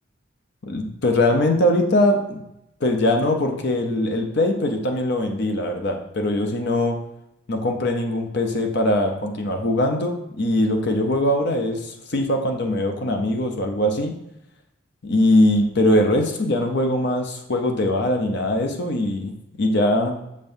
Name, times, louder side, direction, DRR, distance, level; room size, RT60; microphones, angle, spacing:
voice 1, 0.7-2.4 2.8-7.0 7.5-14.2 15.0-19.3 19.6-20.2, left 1 dB, 60° left, 3 dB, 0.7 m, -21 dB
6.6 x 5.3 x 2.6 m, 0.86 s
head